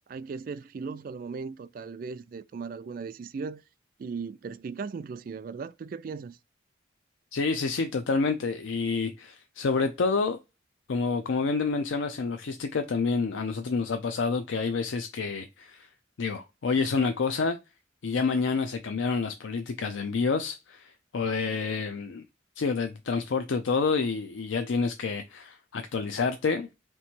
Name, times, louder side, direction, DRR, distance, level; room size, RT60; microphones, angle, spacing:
voice 1, 0.1-3.6 4.0-6.4, right 5 dB, 50° right, 0.3 m, -37 dB
voice 2, 7.3-10.4 10.9-15.9 16.2-17.6 18.0-22.2 22.6-26.7, left 4 dB, 85° left, 0.5 m, -28 dB
3.3 x 3.0 x 4.3 m
head